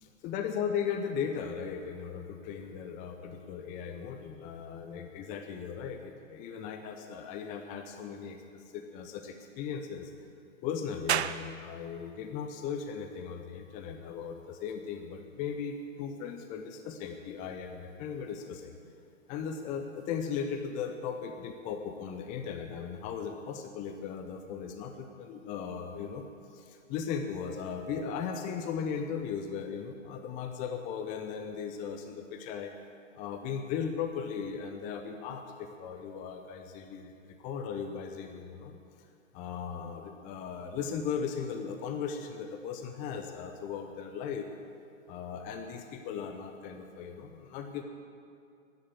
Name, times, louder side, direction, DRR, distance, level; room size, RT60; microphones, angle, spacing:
voice 1, 0.0-10.1 10.6-18.8 19.3-26.2 26.5-32.7 33.2-38.8 39.3-44.5 45.1-47.8, left 7 dB, 20° left, 6 dB, 0.9 m, -37 dB
sound 1, 11.1-24.2, right 10 dB, 55° right, 0.7 m, -43 dB
13.5 x 10.5 x 8.5 m, 2.4 s
figure-of-eight pair, 125°, 39 cm